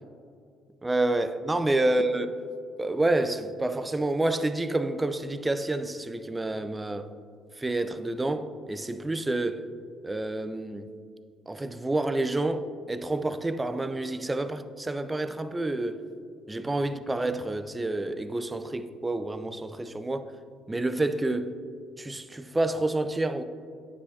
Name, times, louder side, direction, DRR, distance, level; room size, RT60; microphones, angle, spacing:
voice 1, 0.8-2.4 2.8-7.1 7.6-9.7 10.0-10.9 11.5-16.0 16.5-20.3 20.7-21.5 22.0-23.4, right 2 dB, 20° right, 0.4 m, -28 dB
9.6 x 5.9 x 2.7 m
hypercardioid pair, 50°, 0 cm